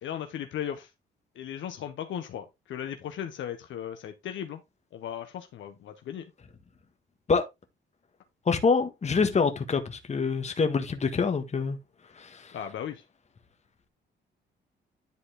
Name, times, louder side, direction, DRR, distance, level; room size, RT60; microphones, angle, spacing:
voice 1, 0.0-0.9 1.3-4.6 4.9-6.3 12.5-13.0, left 9 dB, 75° left, 1.3 m, -36 dB
voice 2, 8.4-11.8 12.2-12.6, left 5 dB, 35° left, 1.6 m, -26 dB
11.0 x 4.1 x 3.8 m
cardioid pair, 90°, 20 cm